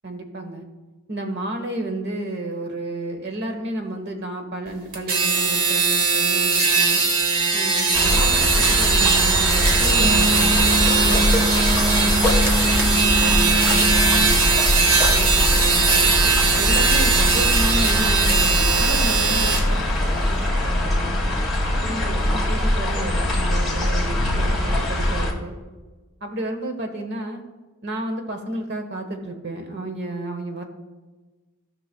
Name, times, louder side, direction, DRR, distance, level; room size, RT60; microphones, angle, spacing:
voice 1, 0.0-0.6 1.1-7.0 7.5-14.6 15.1-16.1 16.6-21.2 21.6-25.6 26.2-27.4 27.8-30.6, right 1 dB, 50° right, 5 dB, 1.1 m, -32 dB
sound 1, 4.9-19.6, right 4 dB, 85° right, 1.4 m, -20 dB
sound 2, 7.9-25.3, left 1 dB, ahead, 1.9 m, -22 dB
Wind instrument woodwind instrument, 10.0-14.4, right 1 dB, 30° right, 0.4 m, -25 dB
16.0 x 5.8 x 2.2 m, 1.2 s
head